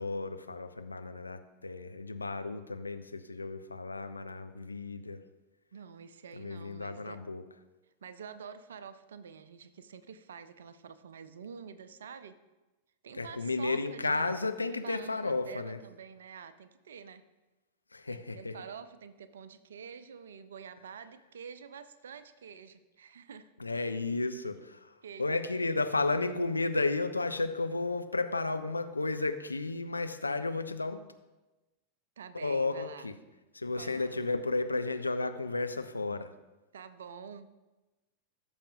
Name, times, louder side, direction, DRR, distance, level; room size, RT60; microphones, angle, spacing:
voice 1, 0.0-5.2 6.3-7.4 13.1-15.8 17.9-18.6 23.6-31.1 32.3-33.1 33.5-36.3, left 3 dB, 80° left, 8 dB, 0.6 m, -33 dB
voice 2, 5.7-7.2 8.0-12.4 13.0-14.3 14.7-17.3 18.1-23.5 25.0-25.6 32.2-33.1 33.7-34.3 36.7-37.5, right 6 dB, 65° right, 12 dB, 0.6 m, -47 dB
17.0 x 7.0 x 2.7 m, 1.1 s
figure-of-eight pair, 90°, 0 cm